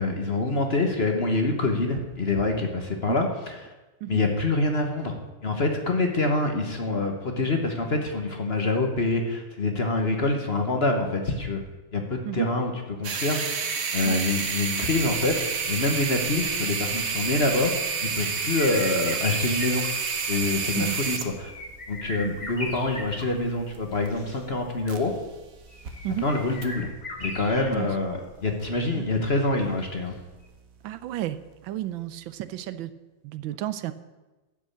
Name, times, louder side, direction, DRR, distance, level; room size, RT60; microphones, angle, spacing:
voice 1, 0.0-3.7 4.1-5.2 5.4-11.6 11.9-12.7 13.0-13.7 13.9-19.9 20.3-21.5 21.9-25.1 26.2-26.9 27.2-30.1, left 2 dB, 35° left, 3 dB, 1.1 m, -26 dB
Noise from a Broken Walkman, 13.0-25.4 25.6-25.9 26.6-26.7, right 5 dB, 45° right, 1.3 m, -30 dB
sound 1, 14.3-30.1 30.4-30.5, left 1 dB, 20° left, 1.9 m, -41 dB
voice 2, 30.8-31.4 31.6-32.9 33.2-33.9, right 14 dB, 75° right, 14 dB, 1.3 m, -32 dB
12.0 x 6.2 x 8.5 m, 1.1 s
omnidirectional pair, 2.4 m